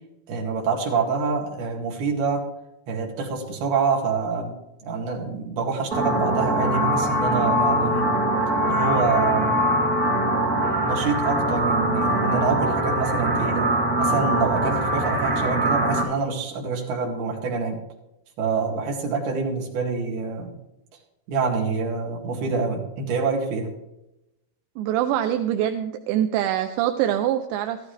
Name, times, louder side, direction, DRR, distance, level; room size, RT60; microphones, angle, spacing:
voice 1, 0.3-2.5 2.9-4.6 4.8-8.1 8.7-9.7 10.9-13.7 14.0-17.8 18.4-20.5 21.3-23.7, right 4 dB, 65° right, 0 dB, 4.0 m, -26 dB
sound 1, 5.9-16.0, right 1 dB, 30° right, 1.8 m, -22 dB
voice 2, 24.8-27.8, right 11 dB, 85° right, 6 dB, 2.9 m, -24 dB
14.0 x 13.5 x 3.3 m, 0.89 s
omnidirectional pair, 5.0 m